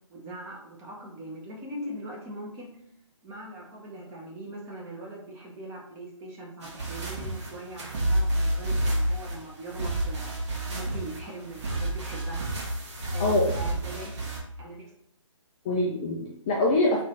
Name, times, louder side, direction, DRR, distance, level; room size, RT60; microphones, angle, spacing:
voice 1, 0.1-2.7 3.2-10.3 10.7-12.5 13.1-14.3 14.6-14.9 15.6-15.9, right 1 dB, 15° right, -2 dB, 0.8 m, -41 dB
sound 1, 6.6-14.4, right 1 dB, 55° right, 1.8 m, -29 dB
voice 2, 13.0-13.5 15.6-17.0, left 2 dB, 15° left, -4 dB, 0.3 m, -25 dB
3.8 x 3.2 x 3.8 m, 0.72 s
figure-of-eight pair, 150°, 17 cm